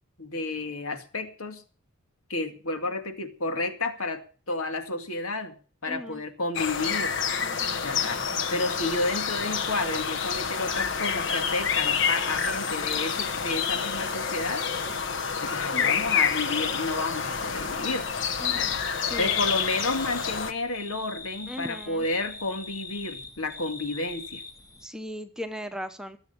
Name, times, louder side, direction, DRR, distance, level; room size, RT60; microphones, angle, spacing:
voice 1, 0.2-1.6 2.3-5.5 5.8-7.2 7.8-8.2 8.5-14.7 15.4-18.1 18.5-18.8 19.2-24.4, left 2 dB, 85° left, 6 dB, 2.3 m, -31 dB
voice 2, 5.9-6.2 7.4-7.8 15.7-16.0 18.4-19.4 21.5-22.1 24.8-26.2, equal, 5° right, 7 dB, 0.9 m, -38 dB
sound 1, 6.5-20.5, left 6 dB, 55° left, 1.3 m, -28 dB
sound 2, 19.0-24.9, left 4 dB, 15° left, 1.2 m, -43 dB
20.5 x 8.2 x 6.8 m, 0.40 s
head